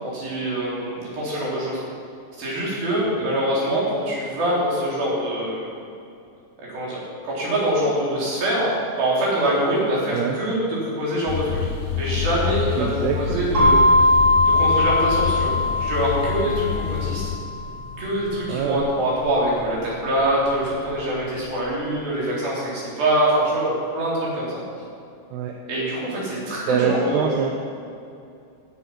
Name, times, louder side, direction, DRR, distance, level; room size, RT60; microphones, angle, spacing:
voice 1, 0.0-1.8 2.4-5.7 6.7-7.0 7.2-11.6 12.0-12.9 13.2-13.9 14.5-15.5 15.8-17.2 18.0-24.6 25.7-27.4, right 1 dB, 60° right, -6 dB, 5.6 m, -24 dB
sound 1, 11.3-17.4, left 8 dB, 80° left, 1.9 m, -27 dB
voice 2, 12.8-13.4 18.5-18.8 25.3-25.5 26.7-27.6, right 7 dB, 85° right, 2 dB, 2.9 m, -25 dB
sound 2, 13.5-21.4, left 2 dB, 40° right, 4.7 m, -22 dB
16.5 x 8.4 x 5.9 m, 2.5 s
omnidirectional pair, 4.6 m